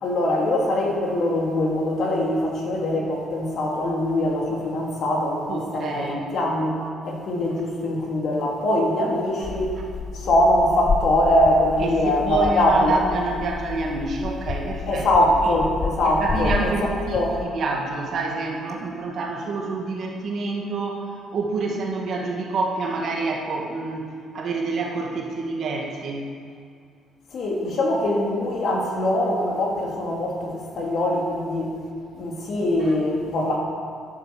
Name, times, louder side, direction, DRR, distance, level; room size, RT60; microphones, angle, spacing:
voice 1, 0.0-9.8 10.1-13.0 14.9-17.4 27.3-31.7 32.1-33.6, left 1 dB, 45° left, -1 dB, 2.4 m, -22 dB
voice 2, 5.5-6.2 11.8-15.1 15.4-15.6 16.0-24.1 24.3-26.3, right 3 dB, 45° right, 0 dB, 2.0 m, -27 dB
sound 1, 9.4-17.5, left 4 dB, 25° left, 0.6 m, -31 dB
11.5 x 11.0 x 7.6 m, 2.2 s
cardioid pair, 165°, 0 cm